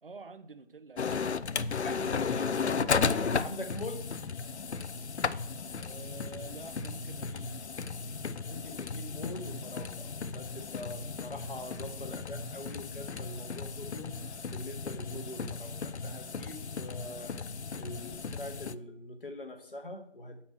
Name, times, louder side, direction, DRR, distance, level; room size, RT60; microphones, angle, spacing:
voice 1, 0.0-1.3 5.7-7.6, right 3 dB, 55° right, 0.7 m, -48 dB
sound 1, 1.0-18.7, left 5 dB, 80° left, 0.5 m, -35 dB
voice 2, 1.8-4.1 8.4-14.1 14.5-17.4 17.8-20.4, left 1 dB, 55° left, 1.3 m, -43 dB
7.5 x 4.3 x 6.1 m
figure-of-eight pair, 165°, 33 cm